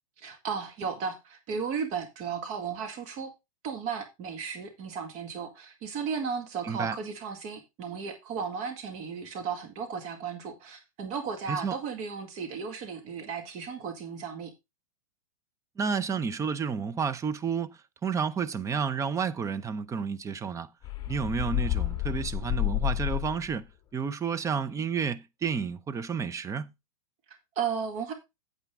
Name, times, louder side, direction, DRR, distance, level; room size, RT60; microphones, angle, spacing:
voice 1, 0.2-3.3 3.6-14.5 27.3-28.1, right 6 dB, 40° right, 2.0 m, -35 dB
voice 2, 6.6-7.0 11.5-11.8 15.8-17.7 18.0-20.7 21.1-23.7 23.9-26.7, right 6 dB, 15° right, 0.7 m, -31 dB
sound 1, 20.8-23.6, left 15 dB, 20° left, 1.9 m, -30 dB
9.0 x 8.1 x 3.6 m
hypercardioid pair, 110°, 18 cm